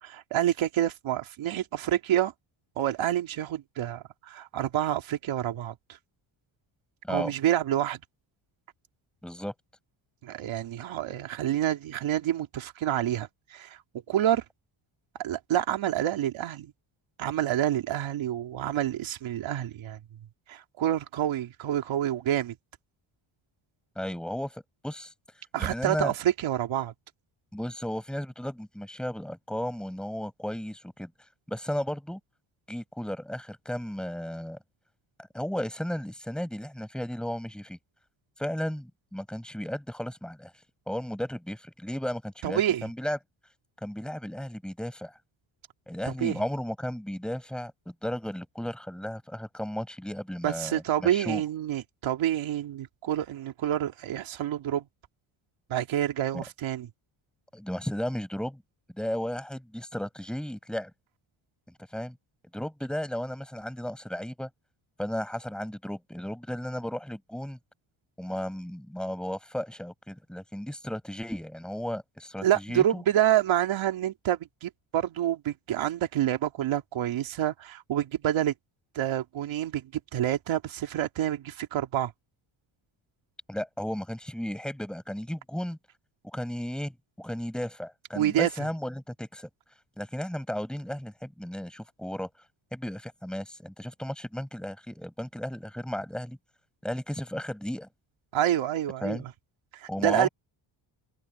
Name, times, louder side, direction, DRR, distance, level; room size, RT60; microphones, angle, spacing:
voice 1, 0.0-2.3 2.8-5.7 7.1-8.0 10.2-13.8 14.1-14.4 15.2-16.7 17.2-20.0 20.5-22.5 25.5-26.9 42.4-42.8 46.1-46.4 50.4-54.9 55.7-56.9 72.4-78.5 78.9-82.1 88.1-88.5 98.3-99.3 99.7-100.3, right 11 dB, 70° right, 2.9 m, -28 dB
voice 2, 9.2-9.5 24.0-25.1 25.6-26.1 27.5-31.1 31.5-32.2 32.7-34.6 35.2-37.8 38.4-40.5 40.9-43.2 43.8-45.1 45.9-51.4 56.3-56.4 57.5-58.6 59.0-60.9 61.9-62.2 62.5-64.5 65.0-67.6 68.2-73.0 83.5-85.8 86.3-89.5 90.0-92.3 92.7-96.4 96.8-97.9 99.0-99.2 99.9-100.3, equal, ahead, 6.2 m, -34 dB
open air
cardioid pair, 150°, 50 cm